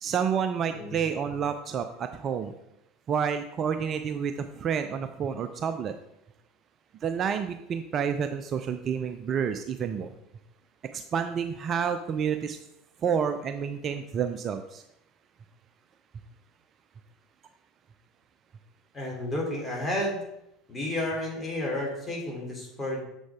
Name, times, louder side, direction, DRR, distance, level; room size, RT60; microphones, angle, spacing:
voice 1, 0.0-2.5 3.1-5.9 7.0-10.1 10.9-12.6 13.0-14.8, right 7 dB, 35° right, 8 dB, 0.5 m, -29 dB
voice 2, 18.9-20.2 20.7-23.0, left 1 dB, 15° left, -2 dB, 3.1 m, -31 dB
7.4 x 6.2 x 3.6 m, 0.84 s
figure-of-eight pair, 70°, 0 cm